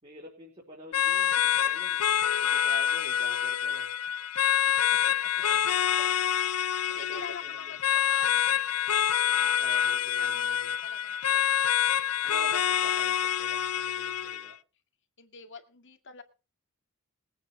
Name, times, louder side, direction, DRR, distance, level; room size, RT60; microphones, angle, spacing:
voice 1, 0.0-2.0 2.4-3.9 5.1-5.6 6.9-7.8 9.2-10.8 12.2-14.6, right 1 dB, 30° right, -3 dB, 4.4 m, -47 dB
sound 1, 0.9-14.5, left 10 dB, 80° left, 0.6 m, -26 dB
voice 2, 6.6-9.0 9.7-10.6 10.8-12.0 15.2-16.2, left 5 dB, 55° left, 7 dB, 2.1 m, -47 dB
21.5 x 9.3 x 4.8 m, 0.33 s
head